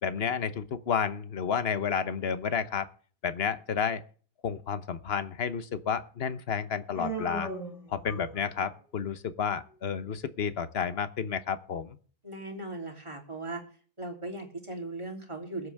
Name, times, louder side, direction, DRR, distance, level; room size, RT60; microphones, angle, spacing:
voice 1, 0.0-2.9 3.2-4.0 4.4-7.5 7.9-12.0, left 7 dB, 45° left, 13 dB, 1.1 m, -31 dB
Human voice, 6.9-8.7, right 2 dB, ahead, 6.0 m, -37 dB
voice 2, 12.2-13.6 14.0-15.7, right 2 dB, 20° right, 1 dB, 3.1 m, -38 dB
21.5 x 8.1 x 3.5 m, 0.43 s
omnidirectional pair, 1.7 m